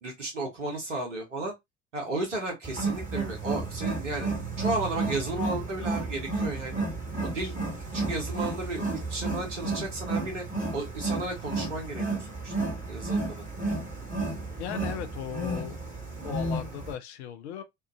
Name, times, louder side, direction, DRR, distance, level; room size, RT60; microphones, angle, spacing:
voice 1, 0.0-1.5 1.9-6.8 7.2-7.6 7.9-10.4 10.7-12.5 12.9-13.4, right 2 dB, 80° right, 1.0 m, -34 dB
Wild animals, 2.6-16.9, right 3 dB, 20° right, 1.4 m, -32 dB
voice 2, 14.6-15.8 16.2-17.6, left 9 dB, 65° left, 0.6 m, -37 dB
2.7 x 2.4 x 2.4 m
figure-of-eight pair, 65°, 36 cm